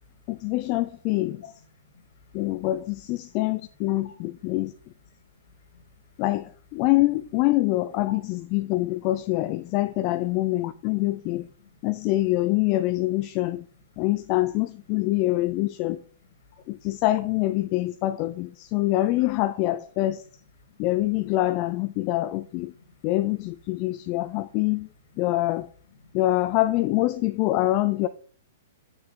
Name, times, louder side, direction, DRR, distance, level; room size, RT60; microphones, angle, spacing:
voice 1, 0.3-1.4 2.3-4.7 6.2-11.5 11.8-13.6 14.0-16.0 16.7-20.2 20.8-22.7 23.0-24.9 25.2-25.7 26.1-28.1, left 17 dB, 40° left, 0.5 m, -25 dB
voice 2, 1.8-2.3 4.0-4.2 5.4-5.8 11.6-11.8 16.5-16.8 20.7-20.8 22.7-23.1 23.9-24.0 26.0-26.2, left 6 dB, 60° left, 2.6 m, -53 dB
6.9 x 6.6 x 5.2 m
hypercardioid pair, 120°, 0 cm